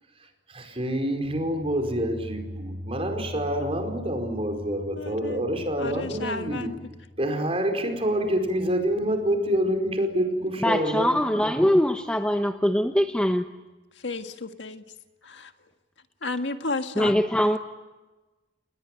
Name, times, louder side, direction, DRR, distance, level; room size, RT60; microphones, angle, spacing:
voice 1, 0.5-6.7 7.2-11.1, equal, 35° right, 5 dB, 4.9 m, -27 dB
sound 1, 1.1-10.0, left 1 dB, 75° right, 2.7 m, -42 dB
voice 2, 5.0-5.5 5.8-6.9 14.0-14.8 15.2-15.5 16.2-17.1, left 3 dB, 80° left, 7 dB, 1.8 m, -32 dB
voice 3, 10.6-13.5 17.0-17.6, equal, 5° left, 6 dB, 0.9 m, -22 dB
29.0 x 20.5 x 9.1 m, 1.1 s
head